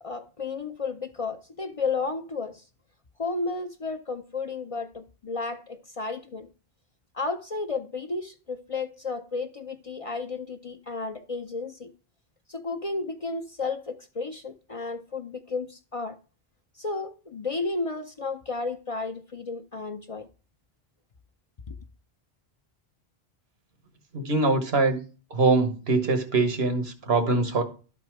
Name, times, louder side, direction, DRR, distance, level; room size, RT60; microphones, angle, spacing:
voice 1, 0.0-2.6 3.2-6.5 7.1-11.9 12.5-16.2 16.8-20.3 21.7-21.8, left 3 dB, 40° left, 0.6 m, -33 dB
voice 2, 24.1-25.0 25.3-27.6, right 3 dB, 80° right, 1.5 m, -23 dB
12.0 x 4.1 x 4.6 m
omnidirectional pair, 1.0 m